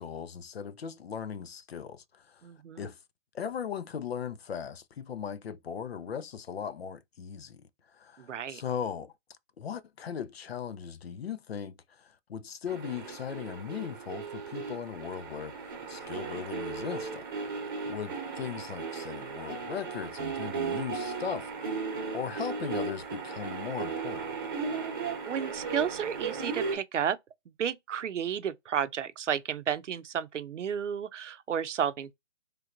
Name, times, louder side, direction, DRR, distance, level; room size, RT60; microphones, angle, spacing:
voice 1, 0.0-2.4 2.8-3.0 3.3-7.7 7.9-9.1 9.6-17.6 17.9-24.3, left 7 dB, 60° left, 0.5 m, -38 dB
voice 2, 2.4-2.9 8.2-8.6 25.2-27.2 27.5-32.1, right 8 dB, 85° right, 0.6 m, -32 dB
sound 1, 12.7-26.8, right 5 dB, 20° right, 0.9 m, -36 dB
3.2 x 3.0 x 2.5 m
hypercardioid pair, 170°, 36 cm